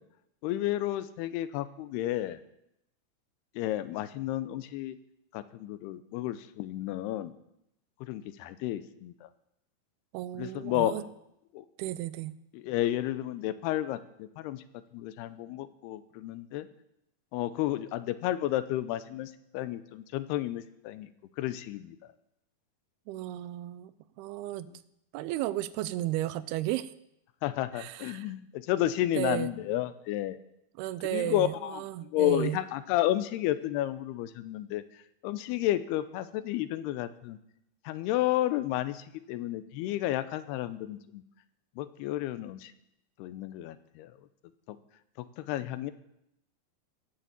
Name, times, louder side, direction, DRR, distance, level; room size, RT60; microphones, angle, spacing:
voice 1, 0.4-2.4 3.6-5.0 5.3-7.3 8.0-9.3 10.3-11.0 11.5-11.7 12.5-14.6 14.9-16.7 17.3-21.1 21.4-22.0 24.7-24.8 27.4-30.4 31.1-34.8 35.2-37.4 37.9-41.2 41.8-42.7 43.2-44.1 44.7-44.8 45.2-45.9, left 14 dB, 85° left, 13 dB, 2.7 m, -31 dB
voice 2, 10.1-11.0 11.8-12.4 23.1-23.9 24.2-24.7 25.1-26.9 27.7-28.3 29.1-29.5 30.8-32.6, right 15 dB, 80° right, 15 dB, 2.5 m, -34 dB
17.5 x 6.9 x 7.4 m, 0.80 s
omnidirectional pair, 4.6 m